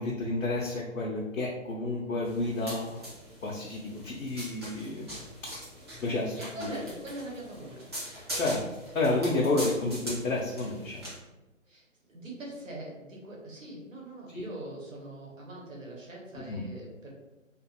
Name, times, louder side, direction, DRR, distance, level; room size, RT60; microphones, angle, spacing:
voice 1, 0.0-3.1 3.4-5.2 6.0-6.7 8.3-8.6 8.9-11.1 14.3-14.4 16.3-16.6, left 2 dB, 75° left, -3 dB, 0.6 m, -30 dB
sound 1, 2.2-11.2, equal, 20° right, 0.6 m, -42 dB
voice 2, 6.5-7.9 11.7-17.1, right 1 dB, 75° right, -2 dB, 1.1 m, -42 dB
2.5 x 2.4 x 2.7 m, 1.1 s
figure-of-eight pair, 145°, 40 cm